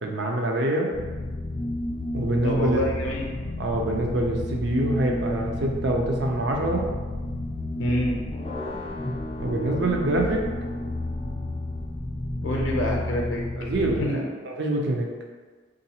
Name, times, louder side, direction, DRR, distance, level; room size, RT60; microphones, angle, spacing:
voice 1, 0.0-0.9 2.1-2.9 3.6-6.9 9.4-10.4 13.6-14.1 14.4-15.1, right 1 dB, 60° right, 1 dB, 0.5 m, -25 dB
sound 1, 0.9-14.0, left 1 dB, 30° left, 0.3 m, -31 dB
voice 2, 2.4-3.3 7.8-8.2 12.4-13.4 14.0-14.2, left 1 dB, 75° left, -2 dB, 0.6 m, -26 dB
3.8 x 2.5 x 2.8 m, 1.4 s
head